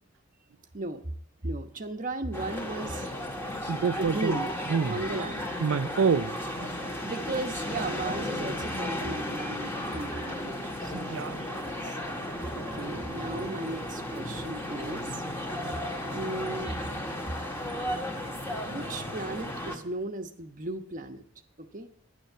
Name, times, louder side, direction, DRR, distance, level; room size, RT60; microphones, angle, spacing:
voice 1, 1.4-3.1 4.0-4.5 4.8-5.5 7.0-11.1 11.5-12.0 12.5-15.2 16.1-16.8 18.7-21.2 21.6-21.9, right 2 dB, 40° right, 1.1 m, -36 dB
sound 1, 2.3-19.8, left 1 dB, 10° left, 1.8 m, -34 dB
voice 2, 3.7-4.4 4.7-5.0 5.6-7.0 10.9-11.7, right 6 dB, 85° right, 0.5 m, -28 dB
12.0 x 10.5 x 6.8 m
head